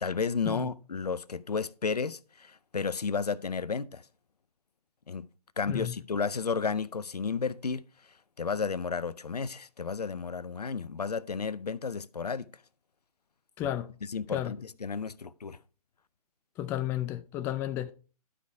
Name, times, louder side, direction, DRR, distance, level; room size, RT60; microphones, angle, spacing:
voice 1, 0.0-4.0 5.1-5.3 5.6-7.8 8.4-12.5 13.6-13.7 14.1-15.6, left 5 dB, 85° left, 0.6 m, -32 dB
voice 2, 13.6-13.9 14.3-14.5 16.6-17.9, left 12 dB, 10° left, 0.4 m, -32 dB
12.0 x 4.9 x 4.6 m
figure-of-eight pair, 130°, 20 cm